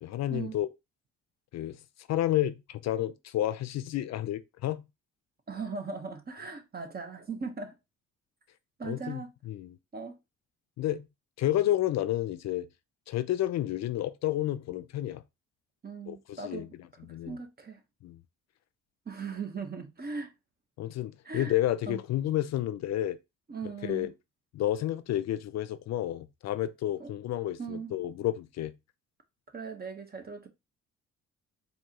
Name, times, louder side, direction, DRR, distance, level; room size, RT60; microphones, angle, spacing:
voice 1, 0.0-0.7 1.5-1.8 2.1-4.9 8.8-9.2 9.5-9.8 10.8-11.1 11.4-12.7 13.1-15.2 16.1-16.7 17.1-17.4 18.0-18.2 20.8-23.2 23.8-24.1 24.5-28.7, left 13 dB, 60° left, 0.5 m, -30 dB
voice 2, 5.5-7.7 8.8-9.3 9.9-10.2 15.8-16.7 17.1-17.8 19.1-20.3 21.2-21.5 21.9-22.0 23.5-24.1 27.0-27.1 27.6-27.9 29.5-30.5, right 5 dB, 30° right, 0.9 m, -38 dB
4.6 x 2.7 x 2.8 m
cardioid pair, 90°, 30 cm